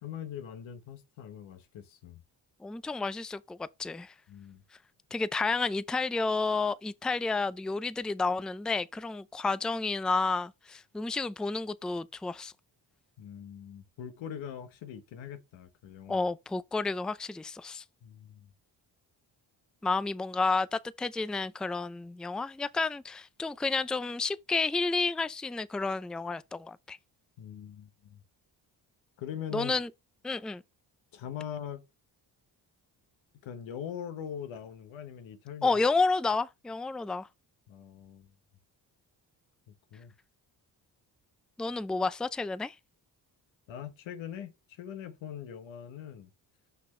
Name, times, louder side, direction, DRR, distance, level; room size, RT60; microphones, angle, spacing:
voice 1, 0.0-2.2 4.3-4.6 13.2-16.3 18.0-18.5 27.4-28.2 29.2-29.8 31.1-31.9 33.4-35.8 37.7-38.3 39.7-40.1 43.7-46.3, left 9 dB, 85° left, 1.3 m, -42 dB
voice 2, 2.6-4.1 5.1-12.5 16.1-17.8 19.8-27.0 29.5-29.9 30.2-30.6 35.6-37.3 41.6-42.8, left 3 dB, ahead, 0.4 m, -31 dB
6.0 x 5.8 x 3.3 m
cardioid pair, 65°, 45 cm